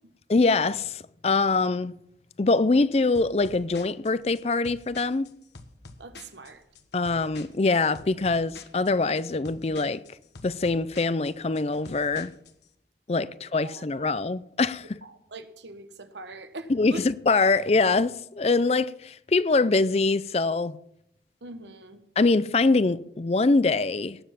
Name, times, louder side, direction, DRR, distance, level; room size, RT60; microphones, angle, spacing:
voice 1, 0.3-1.9 2.4-5.3 6.9-10.0 10.4-12.3 13.1-15.0 16.7-20.8 22.2-24.2, left 3 dB, 35° left, 0.4 m, -24 dB
sound 1, 3.1-12.7, left 3 dB, 80° left, 1.4 m, -48 dB
voice 2, 6.0-6.6 13.6-14.2 15.0-17.0 21.4-22.0, right 2 dB, 85° right, 1.3 m, -42 dB
18.0 x 7.4 x 5.8 m
head